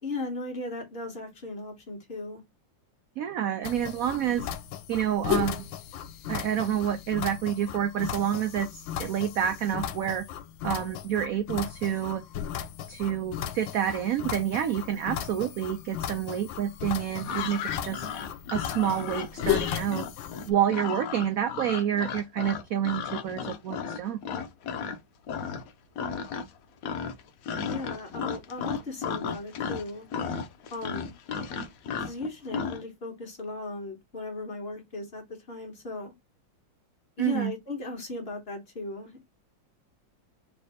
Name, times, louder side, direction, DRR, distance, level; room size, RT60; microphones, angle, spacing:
voice 1, 0.0-2.4 27.6-30.1 30.7-31.1 32.0-36.1 37.2-39.2, left 2 dB, 35° left, 1.3 m, -37 dB
voice 2, 3.2-4.5 4.9-5.7 6.3-10.2 10.6-12.2 12.9-18.1 18.5-20.1 20.5-24.2 37.2-37.5, right 10 dB, 85° right, 0.7 m, -28 dB
sound 1, 3.6-20.5, left 10 dB, 85° left, 1.3 m, -35 dB
sound 2, 17.2-25.0 25.3-25.7 26.0-26.6 26.8-32.8, left 6 dB, 65° left, 0.9 m, -34 dB
3.3 x 3.3 x 4.0 m
omnidirectional pair, 2.1 m